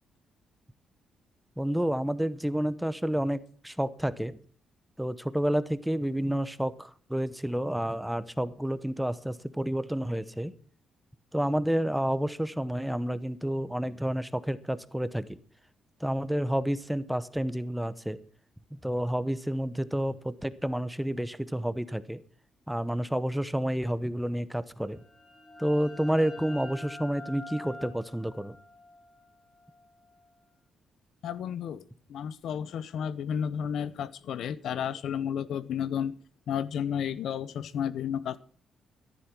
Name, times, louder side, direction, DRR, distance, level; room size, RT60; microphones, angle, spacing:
voice 1, 1.6-3.4 3.6-4.4 5.0-10.5 11.3-15.4 16.0-18.2 18.7-22.2 22.7-25.0 25.6-28.6, equal, 5° right, 14 dB, 0.9 m, -30 dB
sound 1, 24.9-30.4, left 2 dB, 15° left, 6.0 m, -47 dB
voice 2, 31.2-31.8 32.1-36.2 36.5-38.4, left 8 dB, 75° left, 17 dB, 0.8 m, -32 dB
14.0 x 11.0 x 6.1 m, 0.43 s
cardioid pair, 115°, 0 cm